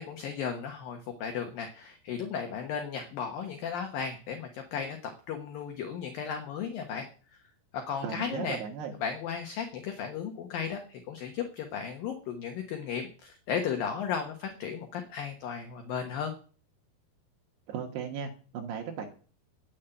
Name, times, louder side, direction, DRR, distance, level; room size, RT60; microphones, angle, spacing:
voice 1, 0.0-7.1 7.9-8.6 9.0-16.3, left 7 dB, 65° left, 4 dB, 2.5 m, -35 dB
voice 2, 8.0-9.0 17.7-19.1, right 7 dB, 70° right, 2 dB, 3.2 m, -36 dB
10.5 x 7.4 x 9.0 m, 0.41 s
omnidirectional pair, 5.3 m